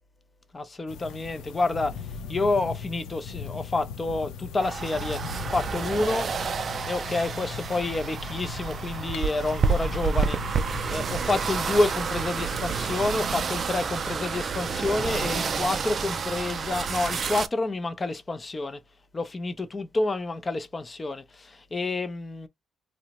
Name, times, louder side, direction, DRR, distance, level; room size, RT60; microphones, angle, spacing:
voice 1, 0.5-2.0 2.3-5.2 5.5-6.3 6.9-10.4 10.9-18.8 19.1-22.5, left 2 dB, 25° left, 0.4 m, -28 dB
sound 1, 0.9-13.5, left 7 dB, 85° left, 0.4 m, -39 dB
sound 2, 4.6-17.5, right 5 dB, 40° right, 0.4 m, -29 dB
2.8 x 2.0 x 2.8 m
cardioid pair, 115°, 0 cm